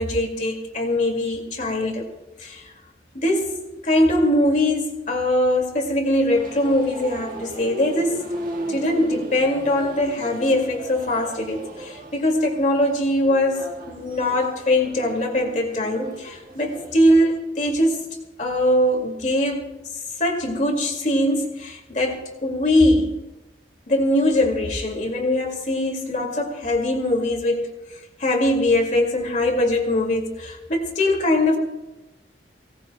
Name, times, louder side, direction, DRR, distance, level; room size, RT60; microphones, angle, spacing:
voice 1, 0.0-2.0 2.4-2.7 3.1-3.5 3.8-8.2 8.7-19.6 20.2-23.1 23.9-27.7 28.2-31.6, left 1 dB, 45° left, 2 dB, 2.2 m, -22 dB
sound 1, 6.3-17.4, right 1 dB, 45° right, 1.6 m, -36 dB
23.5 x 18.0 x 2.2 m, 1.0 s
head